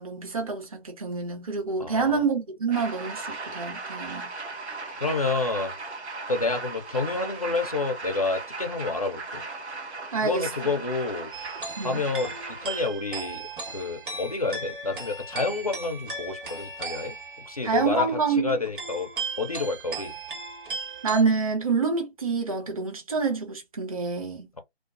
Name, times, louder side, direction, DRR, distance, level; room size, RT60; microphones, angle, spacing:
voice 1, 0.0-4.3 10.1-10.5 11.8-12.0 17.6-18.5 21.0-24.5, right 4 dB, 35° right, 0.7 m, -27 dB
voice 2, 1.8-2.2 5.0-5.7 6.3-9.4 10.2-11.3 11.8-17.2 17.5-20.2, left 3 dB, 35° left, 0.4 m, -29 dB
sound 1, 2.7-12.9, right 3 dB, 90° right, 0.8 m, -37 dB
sound 2, 11.3-21.2, right 3 dB, 50° right, 1.2 m, -37 dB
2.3 x 2.3 x 2.3 m
figure-of-eight pair, 155°, 32 cm